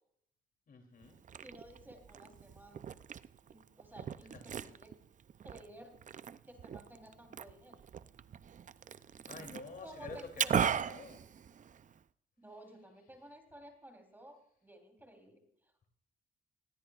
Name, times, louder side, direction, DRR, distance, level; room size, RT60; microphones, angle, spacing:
voice 1, 0.7-1.2 9.2-11.2, left 4 dB, 45° left, 4 dB, 3.2 m, -49 dB
Liquid, 1.0-12.0, right 8 dB, 40° right, 0.5 m, -39 dB
voice 2, 1.4-2.9 3.5-5.0 5.4-5.9 6.4-7.8 9.8-10.8 12.4-15.9, right 1 dB, 10° right, 3 dB, 3.7 m, -55 dB
20.5 x 15.5 x 2.5 m, 0.72 s
cardioid pair, 90°, 20 cm